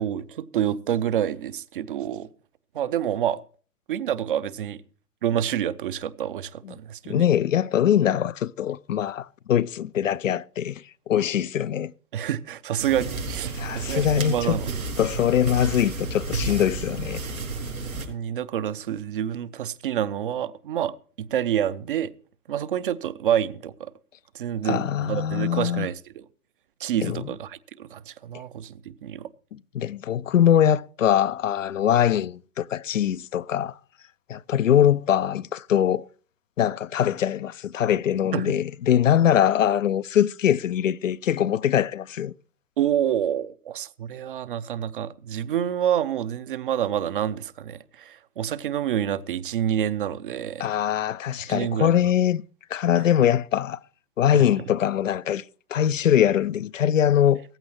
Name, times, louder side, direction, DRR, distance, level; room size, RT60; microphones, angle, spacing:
voice 1, 0.0-2.3 2.7-3.4 3.9-4.8 5.2-7.3 12.1-14.7 17.8-22.1 22.5-23.9 24.3-26.2 26.8-29.3 38.3-38.5 42.8-50.7 51.5-51.9 54.3-54.5, right 10 dB, 35° right, 0.7 m, -28 dB
voice 2, 7.1-11.9 13.5-14.6 15.0-17.2 24.6-25.9 27.0-27.2 29.7-33.7 34.3-36.0 36.6-42.3 50.6-52.4 52.7-53.8 54.2-55.4 55.7-57.4, left 10 dB, 60° left, 0.6 m, -22 dB
sound 1, 12.8-18.1, right 3 dB, 70° right, 4.9 m, -31 dB
17.0 x 14.5 x 2.9 m
figure-of-eight pair, 120°, 44 cm